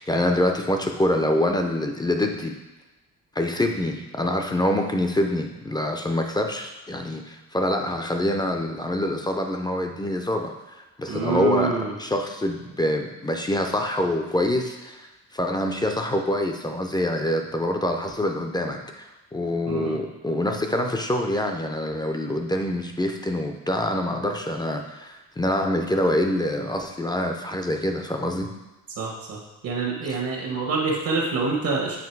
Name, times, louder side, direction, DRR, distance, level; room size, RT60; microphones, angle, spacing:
voice 1, 0.0-2.6 3.4-28.5, left 1 dB, 15° left, 3 dB, 0.4 m, -25 dB
voice 2, 11.1-11.9 19.7-20.0 29.0-29.4 29.6-32.0, right 4 dB, 75° right, -2 dB, 1.3 m, -26 dB
7.3 x 3.0 x 4.5 m, 1.1 s
wide cardioid pair, 150°, 34 cm